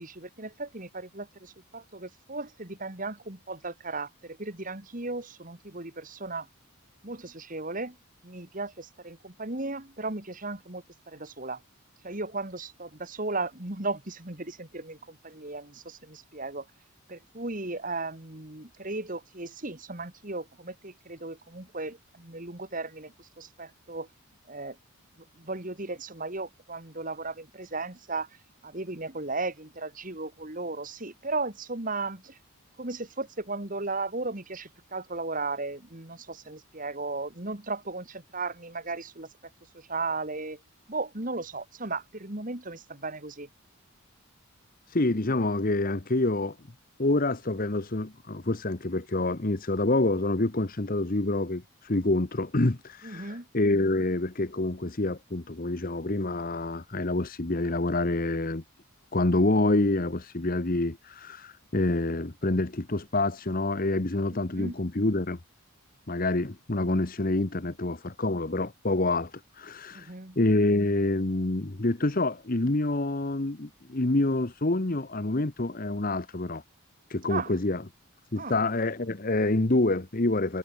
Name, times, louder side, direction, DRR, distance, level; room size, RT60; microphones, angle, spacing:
voice 1, 0.0-6.5 7.0-8.0 8.2-11.6 12.0-16.7 17.1-24.1 24.5-24.8 25.4-28.3 28.6-32.4 32.8-39.3 39.7-40.6 40.9-43.5 53.0-53.5 64.5-64.7 69.9-70.4 77.3-77.5 78.4-78.5, right 3 dB, 35° right, 2.2 m, -36 dB
voice 2, 44.9-46.6 47.0-58.6 59.1-65.4 66.1-76.6 77.1-77.8 78.3-80.6, left 2 dB, 40° left, 1.1 m, -27 dB
head